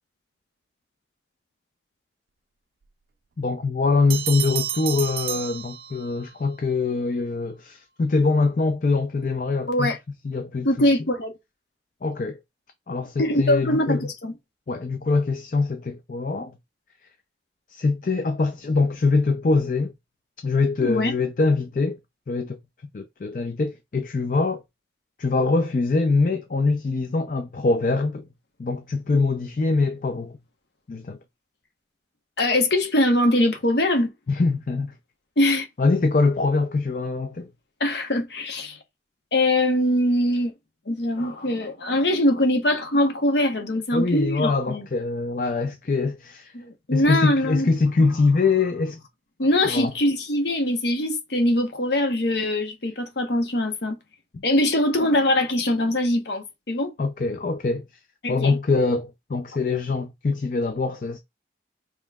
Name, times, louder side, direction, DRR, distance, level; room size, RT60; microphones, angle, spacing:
voice 1, 3.4-9.9 10.2-10.9 12.0-12.4 12.9-14.1 14.7-16.5 17.7-19.9 20.4-22.0 22.3-22.6 22.9-24.6 25.2-28.3 28.6-30.4 30.9-31.2 34.3-34.9 35.8-37.5 43.9-46.5 46.9-49.0 49.6-49.9 54.3-54.4 57.0-57.9 58.3-61.2, left 3 dB, 50° left, 0.4 m, -23 dB
Bell, 4.1-6.3, right 11 dB, 55° right, 0.4 m, -31 dB
voice 2, 9.7-10.0 10.6-11.3 13.2-14.3 20.8-21.2 32.4-34.1 35.4-35.7 37.8-38.8 39.3-40.5 40.9-44.9 46.5-47.7 49.4-54.0 54.4-56.9 58.2-58.6, left 1 dB, 70° left, 1.0 m, -22 dB
5.4 x 3.0 x 2.3 m
head